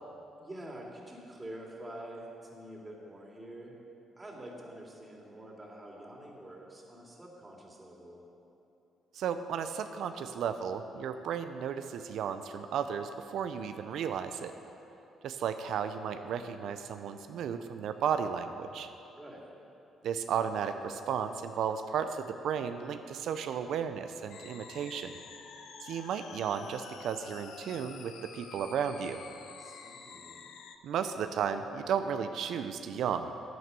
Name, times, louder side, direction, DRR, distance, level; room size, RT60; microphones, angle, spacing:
voice 1, 0.4-3.8 4.2-8.3 19.2-19.5 29.4-30.4, right 1 dB, 25° right, -2 dB, 2.7 m, -47 dB
voice 2, 9.1-14.5 15.2-18.9 20.0-25.2 25.8-29.2 30.8-33.3, right 7 dB, 75° right, 8 dB, 0.5 m, -34 dB
sound 1, 24.3-30.8, left 6 dB, 75° left, 0.8 m, -49 dB
9.3 x 9.3 x 6.8 m, 2.9 s
supercardioid pair, 60°, 0 cm